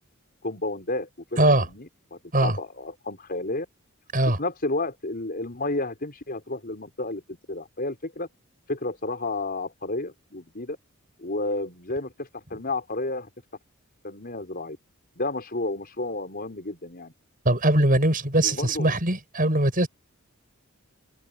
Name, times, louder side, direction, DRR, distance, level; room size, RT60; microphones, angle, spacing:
voice 1, 0.4-3.7 4.4-8.3 8.7-10.8 11.2-13.3 14.0-14.8 15.2-17.1 18.4-19.0, left 2 dB, 45° left, 5.0 m, -31 dB
voice 2, 17.4-19.9, right 1 dB, 40° right, 7.5 m, -21 dB
head